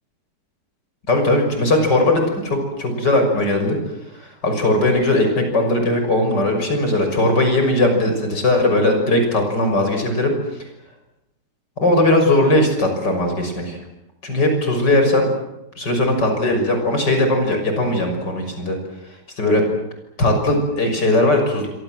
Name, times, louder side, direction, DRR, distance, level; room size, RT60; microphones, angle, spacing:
voice 1, 1.1-3.8 4.1-10.3 11.8-13.8 14.2-15.3 15.8-18.8 19.4-19.6 20.2-21.7, left 1 dB, 75° left, 5 dB, 6.9 m, -18 dB
26.5 x 25.5 x 7.8 m, 0.89 s
omnidirectional pair, 1.9 m